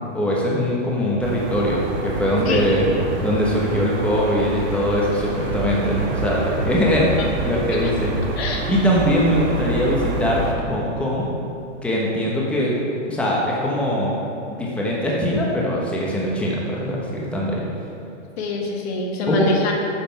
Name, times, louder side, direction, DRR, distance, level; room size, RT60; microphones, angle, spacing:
voice 1, 0.1-2.8 3.2-7.0 7.4-8.1 8.6-11.3 11.8-12.7 13.1-14.1 14.5-17.6 19.3-19.4, equal, 5° left, -4 dB, 1.1 m, -21 dB
sound 1, 1.2-10.5, right 3 dB, 55° right, 2.4 m, -27 dB
voice 2, 7.5-7.9 8.2-8.7 18.4-19.7, left 3 dB, 55° left, 1 dB, 1.7 m, -26 dB
8.9 x 7.0 x 5.8 m, 2.7 s
hypercardioid pair, 135°, 38 cm